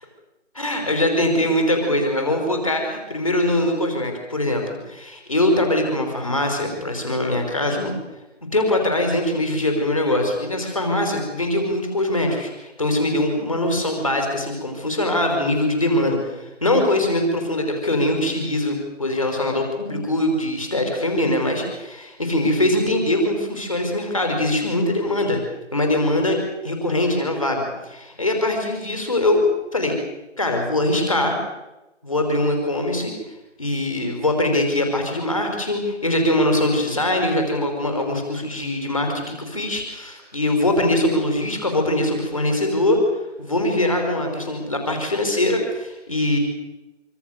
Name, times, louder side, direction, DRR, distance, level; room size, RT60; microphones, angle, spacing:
voice 1, 0.5-7.9 8.5-25.4 25.7-26.4 26.6-29.4 29.7-30.0 30.4-31.4 32.0-33.1 33.6-43.0 43.4-46.4, left 1 dB, 25° left, 3 dB, 5.5 m, -22 dB
26.0 x 26.0 x 6.8 m, 0.98 s
figure-of-eight pair, 175°, 37 cm